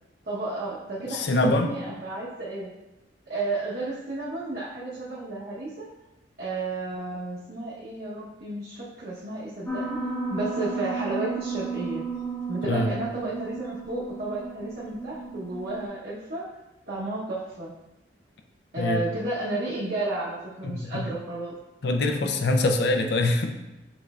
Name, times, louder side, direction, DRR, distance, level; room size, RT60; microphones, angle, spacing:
voice 1, 0.2-2.7 3.3-5.9 6.4-12.0 12.5-16.5 16.9-17.7 18.7-21.5, right 2 dB, 55° right, -8 dB, 0.9 m, -32 dB
voice 2, 1.1-1.7 12.7-13.0 18.8-19.1 20.6-21.1 21.8-23.5, left 2 dB, 60° left, 4 dB, 0.5 m, -24 dB
Piano, 9.7-15.9, right 4 dB, 15° left, 0.6 m, -33 dB
6.0 x 3.2 x 2.3 m, 0.98 s
head